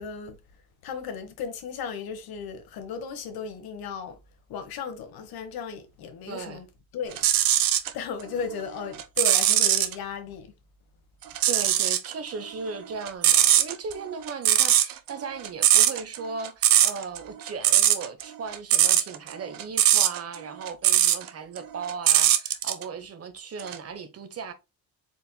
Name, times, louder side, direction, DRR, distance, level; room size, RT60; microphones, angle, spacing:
voice 1, 0.0-4.2 4.5-6.7 6.9-7.6 7.9-10.5, left 6 dB, 70° left, 1.2 m, -35 dB
voice 2, 6.3-6.6 11.5-24.5, right 5 dB, 40° right, 1.0 m, -37 dB
sound 1, 7.1-7.9 8.4-9.9 11.3-12.1 12.4-21.3 21.6-22.8 23.6-23.8, right 12 dB, 65° right, 0.8 m, -21 dB
4.4 x 4.2 x 2.2 m
cardioid pair, 110°, 37 cm